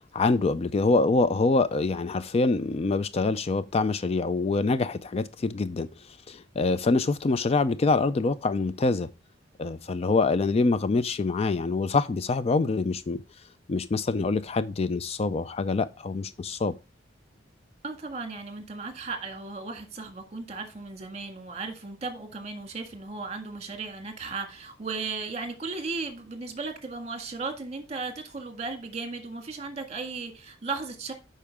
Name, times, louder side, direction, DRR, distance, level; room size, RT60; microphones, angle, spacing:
voice 1, 0.1-5.9 6.3-9.1 9.6-13.2 13.7-16.7, left 3 dB, 35° left, 0.4 m, -25 dB
voice 2, 17.8-31.1, right 4 dB, 35° right, 1.7 m, -36 dB
8.5 x 5.6 x 3.5 m
head